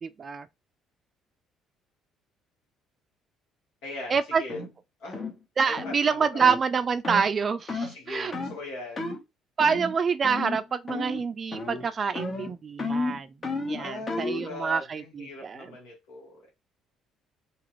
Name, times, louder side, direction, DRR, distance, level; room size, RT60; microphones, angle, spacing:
voice 1, 0.0-0.5 4.1-4.4 5.6-8.3 9.6-13.3 13.6-15.7, right 5 dB, 40° right, 0.3 m, -26 dB
voice 2, 3.8-4.6 5.0-5.2 5.6-6.5 7.8-9.2 13.8-16.5, left 2 dB, 85° left, 1.6 m, -40 dB
sound 1, 4.5-4.7 5.1-5.4 5.8-6.0 6.4-6.6 7.0-7.3 7.7-7.9 8.3-8.6 9.0-9.2 9.6-10.0 10.2-10.6 10.9-11.3 11.5-11.9 12.2-14.5, left 3 dB, 40° left, 1.1 m, -32 dB
2.9 x 2.4 x 3.0 m
supercardioid pair, 80°, 0 cm